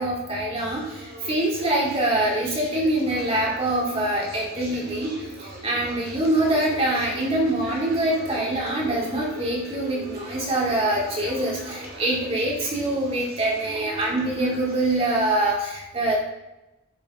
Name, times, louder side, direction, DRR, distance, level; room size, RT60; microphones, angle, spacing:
voice 1, 0.0-16.2, right 1 dB, 25° right, -3 dB, 2.3 m, -24 dB
sound 1, 0.6-15.3, right 1 dB, 40° right, 2.2 m, -41 dB
14.5 x 6.9 x 3.6 m, 0.98 s
head